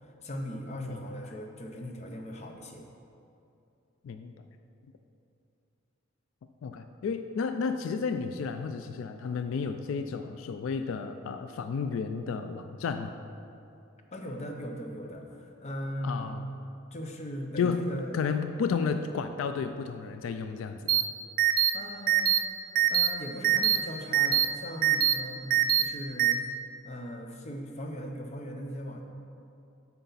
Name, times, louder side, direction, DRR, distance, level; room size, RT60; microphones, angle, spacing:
voice 1, 0.0-2.8 14.1-16.3 16.9-18.1 21.7-22.4 22.9-26.4 26.8-29.0, equal, 35° left, 2 dB, 0.7 m, -39 dB
voice 2, 6.6-13.1 16.0-16.4 17.6-17.8 18.1-21.1, left 5 dB, 80° left, 8 dB, 0.3 m, -32 dB
sound 1, 20.9-21.0 21.4-21.7 22.1-22.4 22.8-23.1 23.4-23.8 24.1-24.5 24.8-25.1 25.5-25.8 26.2-26.3, right 12 dB, 45° right, 0.4 m, -22 dB
8.0 x 5.7 x 4.0 m, 2.6 s
head